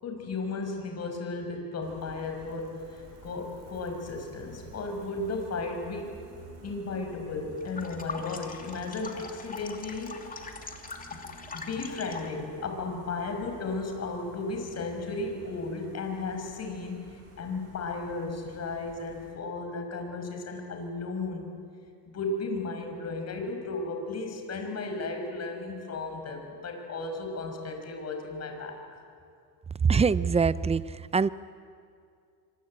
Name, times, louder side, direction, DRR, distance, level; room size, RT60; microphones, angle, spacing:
voice 1, 0.0-6.1 6.6-10.2 11.1-11.2 11.5-17.1 17.4-21.5 22.1-29.0, left 3 dB, 40° left, 4 dB, 5.8 m, -35 dB
Gull seagull, 1.8-19.3, right 3 dB, 40° right, 6.7 m, -52 dB
sound 1, 7.6-12.4, left 4 dB, 20° left, 2.8 m, -41 dB
voice 2, 29.8-31.3, right 5 dB, 15° right, 17 dB, 0.6 m, -24 dB
25.5 x 25.0 x 8.8 m, 2.3 s
cardioid pair, 120°, 38 cm